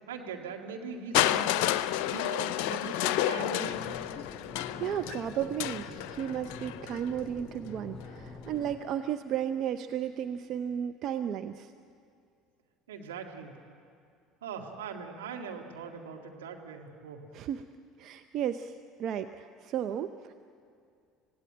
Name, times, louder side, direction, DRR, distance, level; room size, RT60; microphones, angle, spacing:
voice 1, 0.1-1.6 2.0-4.1 12.9-13.6 14.4-17.3, right 5 dB, 80° right, 1 dB, 2.1 m, -41 dB
Crushing, 1.1-7.1 8.0-8.1, left 13 dB, 70° left, 0.6 m, -30 dB
sound 1, 3.7-8.8, left 3 dB, 10° left, 4.1 m, -46 dB
voice 2, 4.8-11.7 17.3-17.6 18.0-18.7 19.0-20.3, right 9 dB, 55° right, 9 dB, 0.7 m, -34 dB
26.0 x 17.0 x 8.8 m, 2.3 s
hypercardioid pair, 65°, 0 cm